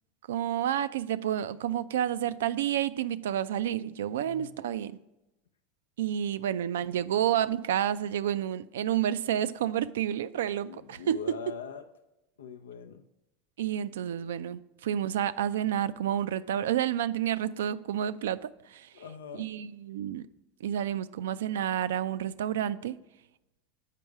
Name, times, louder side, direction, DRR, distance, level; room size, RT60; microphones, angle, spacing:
voice 1, 0.3-4.9 6.0-11.2 13.6-18.9 19.4-20.2 20.6-23.0, right 10 dB, 80° right, 0.3 m, -30 dB
voice 2, 4.3-4.6 10.6-11.9 12.4-13.0 18.9-19.5, left 6 dB, 85° left, 0.5 m, -42 dB
7.5 x 5.3 x 4.7 m
hypercardioid pair, 95°, 0 cm